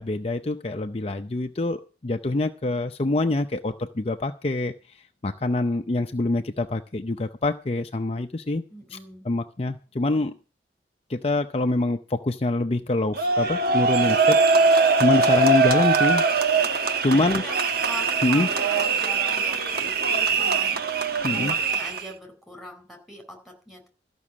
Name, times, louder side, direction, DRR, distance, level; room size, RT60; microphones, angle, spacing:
voice 1, 0.0-5.0 5.2-8.6 8.9-9.0 9.2-10.3 11.1-14.4 15.0-16.2 17.0-17.4 18.2-18.5 21.2-21.6, left 2 dB, 35° left, 6 dB, 0.6 m, -25 dB
voice 2, 8.7-9.3 17.1-17.5 17.9-20.8 21.3-24.0, equal, ahead, 2 dB, 4.1 m, -41 dB
sound 1, 13.2-22.1, right 4 dB, 55° right, 1.2 m, -22 dB
14.0 x 6.1 x 8.5 m, 0.36 s
head